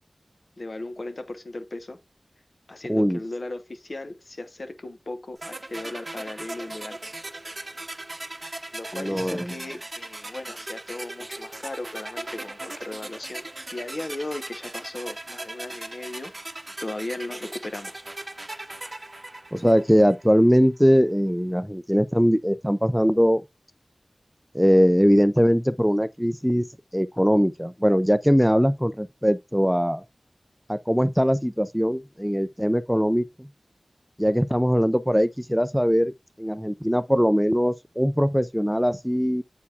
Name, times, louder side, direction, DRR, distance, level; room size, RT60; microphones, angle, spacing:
voice 1, 0.6-2.0 2.7-7.0 8.7-13.4 13.7-16.3 16.8-18.0, left 2 dB, 55° left, 0.9 m, -36 dB
voice 2, 2.9-3.2 8.9-9.5 19.5-23.4 24.5-26.7 26.9-30.0 30.7-33.5 34.2-39.4, equal, ahead, 0.4 m, -21 dB
sound 1, 5.4-20.3, right 2 dB, 35° right, 0.8 m, -38 dB
8.3 x 4.5 x 2.7 m
wide cardioid pair, 70°, 0 cm